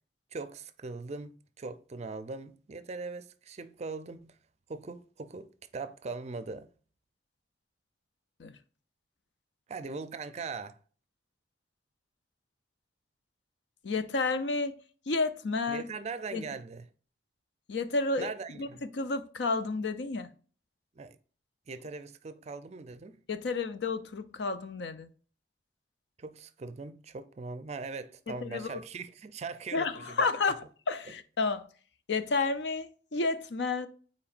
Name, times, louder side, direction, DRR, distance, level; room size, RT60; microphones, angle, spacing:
voice 1, 0.3-1.3 1.6-4.3 4.7-6.7 9.7-10.8 15.7-16.9 18.2-18.8 21.0-21.2 21.7-23.2 26.2-30.3 31.1-31.2, right 4 dB, 40° right, 0.4 m, -40 dB
voice 2, 13.8-14.8 15.1-15.8 16.3-16.4 17.7-18.3 18.6-18.7 18.9-20.3 23.3-25.1 28.3-28.8 29.7-30.5 30.9-31.7 32.1-33.9, left 3 dB, 75° left, 0.6 m, -31 dB
8.7 x 4.3 x 2.5 m
head